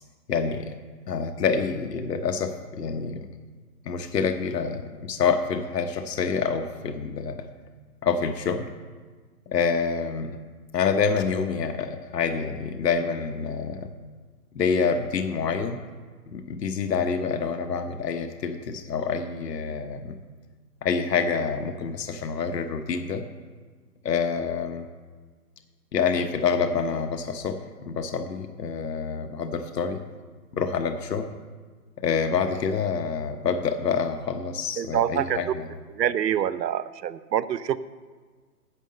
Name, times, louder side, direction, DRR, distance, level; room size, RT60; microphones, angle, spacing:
voice 1, 0.3-0.7 1.1-3.2 3.8-7.5 8.0-8.7 9.5-10.4 10.7-13.9 14.5-15.8 16.3-20.2 20.8-23.2 24.0-24.9 25.9-30.0 30.5-31.3 32.0-35.7, left 5 dB, 75° left, 7 dB, 1.1 m, -27 dB
voice 2, 34.8-35.4 35.9-37.8, right 10 dB, 85° right, 16 dB, 0.7 m, -26 dB
10.0 x 7.3 x 6.5 m, 1.5 s
hypercardioid pair, 175°, 49 cm